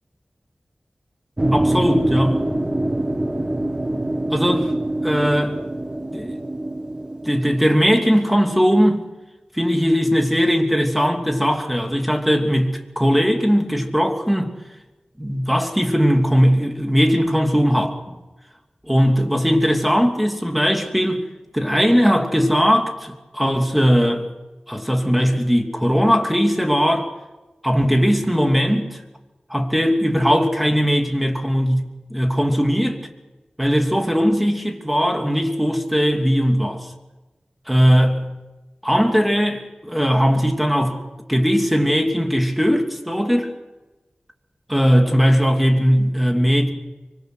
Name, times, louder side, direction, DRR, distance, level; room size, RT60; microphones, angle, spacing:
sound 1, 1.4-7.7, right 1 dB, 25° right, 1.8 m, -24 dB
voice 1, 1.5-2.5 4.3-4.7 5.0-5.6 6.1-6.3 7.2-9.1 9.5-14.5 15.2-18.0 18.9-21.2 21.5-24.3 24.7-27.1 27.6-29.0 29.5-33.1 33.6-36.9 37.7-38.3 38.8-41.0 41.3-43.5 44.7-46.7, equal, ahead, 2.9 m, -19 dB
24.5 x 24.0 x 6.4 m
wide cardioid pair, 85°, 3 cm